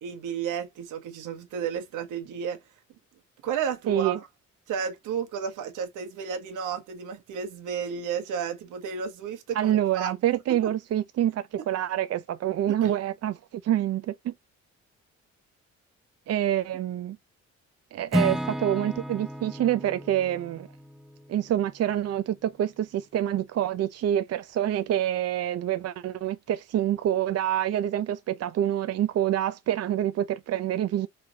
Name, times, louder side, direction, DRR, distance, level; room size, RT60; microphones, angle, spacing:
voice 1, 0.0-2.6 3.4-4.3 4.7-10.1 12.8-12.9, right 7 dB, 85° right, 1.4 m, -32 dB
voice 2, 3.9-4.2 9.5-14.3 16.3-17.2 17.9-20.7 21.3-31.1, right 11 dB, 55° right, 0.5 m, -26 dB
Acoustic guitar / Strum, 18.1-22.2, equal, ahead, 0.7 m, -33 dB
5.6 x 3.3 x 2.8 m
cardioid pair, 90°, 30 cm